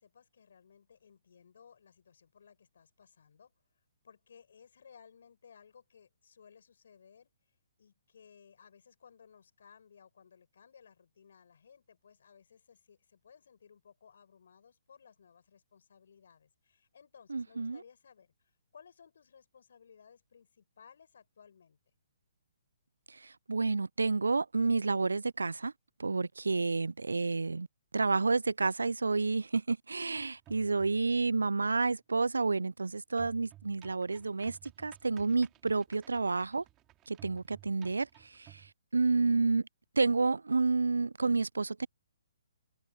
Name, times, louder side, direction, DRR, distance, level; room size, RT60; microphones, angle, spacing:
voice 1, 0.0-3.5 4.0-7.3 7.8-18.3 18.7-21.8, left 7 dB, 60° left, 7.9 m, -59 dB
voice 2, 17.3-17.8 23.1-25.7 26.0-27.7 27.9-36.6 37.1-38.6 38.9-39.7 40.0-41.9, right 3 dB, 80° right, 0.4 m, -30 dB
sound 1, 30.1-31.2 33.2-38.7, right 15 dB, 20° right, 3.1 m, -57 dB
figure-of-eight pair, 130°, 0 cm